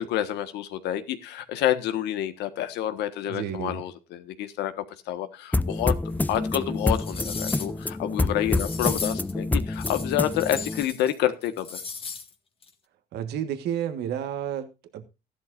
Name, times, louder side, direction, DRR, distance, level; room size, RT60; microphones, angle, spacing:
voice 1, 0.0-4.7 5.1-5.9 6.3-11.8, left 12 dB, 85° left, 1.5 m, -28 dB
voice 2, 3.3-3.8 13.1-15.0, right 10 dB, 75° right, 1.6 m, -31 dB
sound 1, 5.5-10.8, left 2 dB, 10° left, 0.5 m, -27 dB
sound 2, 6.3-6.4 6.9-7.8 8.5-9.3 9.7-11.1 11.4-12.3 12.6-12.7, left 5 dB, 35° left, 1.8 m, -36 dB
14.0 x 12.0 x 2.6 m
cardioid pair, 110°, 17 cm